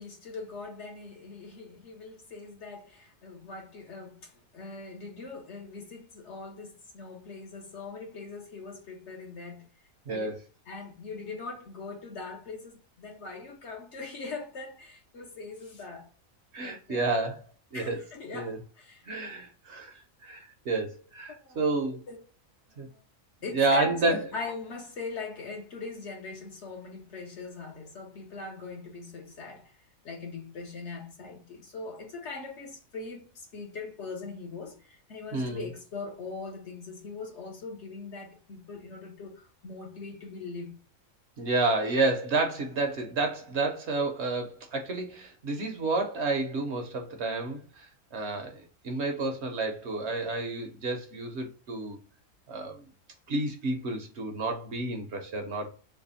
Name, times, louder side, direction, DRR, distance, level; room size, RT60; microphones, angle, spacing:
voice 1, 0.0-9.7 10.1-16.1 16.6-17.0 17.7-19.0 21.3-21.7 22.1-22.2 22.8-23.0 23.4-29.7 30.0-40.8, left 4 dB, 60° left, 1.1 m, -41 dB
voice 2, 16.5-17.4 17.7-18.0 18.3-18.6 19.1-19.9 20.2-22.0 22.8-22.9 23.5-24.2 35.3-35.7 41.4-52.0 52.5-52.8 53.3-55.7, right 3 dB, 60° right, 0.9 m, -30 dB
3.3 x 2.3 x 4.0 m
omnidirectional pair, 1.4 m